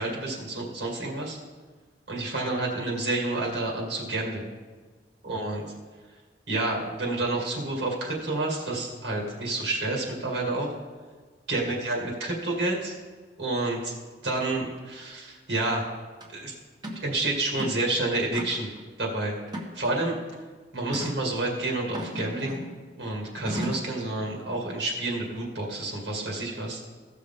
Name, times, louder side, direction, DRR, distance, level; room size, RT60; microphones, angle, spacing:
voice 1, 0.0-1.4 2.1-4.5 5.2-5.6 6.5-10.7 11.5-12.9 13.4-13.9 14.2-15.9 16.3-16.5 17.0-18.7 19.0-19.3 19.7-20.2 20.7-22.6 23.0-26.8, right 2 dB, 75° right, -1 dB, 2.2 m, -29 dB
sound 1, 16.2-16.3 16.8-17.1 17.5-17.9 18.3-18.8 19.5-20.1 20.9-21.2 21.9-22.8 23.5-24.0, equal, 25° right, 1.3 m, -35 dB
16.5 x 6.4 x 3.8 m, 1.4 s
head